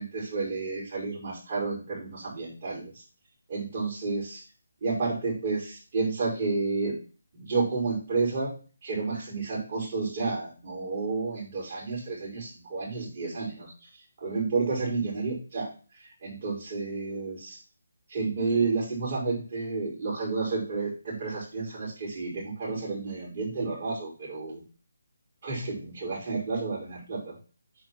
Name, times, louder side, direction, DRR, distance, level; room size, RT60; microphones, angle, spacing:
voice 1, 0.0-2.9 3.5-4.4 4.8-7.0 7.3-8.5 8.8-13.7 14.2-15.7 16.2-17.6 18.1-24.6 25.4-27.3, right 4 dB, 35° right, -6 dB, 5.2 m, -31 dB
8.9 x 4.7 x 6.1 m, 0.37 s
hypercardioid pair, 165°, 0 cm